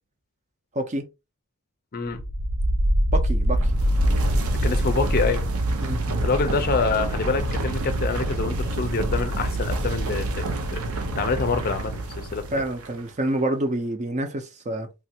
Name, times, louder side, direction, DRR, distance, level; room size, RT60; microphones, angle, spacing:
voice 1, 0.7-1.1 3.1-3.7 5.8-6.0 12.5-14.9, right 1 dB, 35° right, 0.5 m, -27 dB
Cracking Earthquake (cracking soil cracking stone), 2.2-12.9, right 1 dB, 75° right, 0.7 m, -25 dB
voice 2, 4.5-5.4 6.2-10.4 10.7-10.8 11.1-12.4, left 4 dB, 40° left, 0.5 m, -26 dB
3.3 x 2.4 x 2.7 m
head